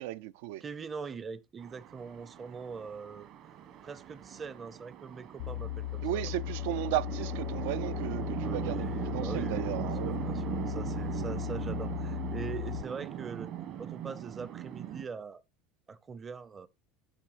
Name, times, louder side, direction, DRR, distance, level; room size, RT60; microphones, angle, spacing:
voice 1, 0.0-0.6 6.0-10.2, right 15 dB, 75° right, 0.4 m, -35 dB
voice 2, 0.6-3.3 3.8-6.3 8.3-13.5 13.8-15.4 15.9-16.7, right 5 dB, 25° right, 0.6 m, -42 dB
Chatter / Traffic noise roadway noise / Train, 1.6-15.0, right 10 dB, 50° right, 1.3 m, -39 dB
sound 1, 5.4-12.8, left 16 dB, 75° left, 0.4 m, -37 dB
14.0 x 5.5 x 2.9 m
supercardioid pair, 130°, 0 cm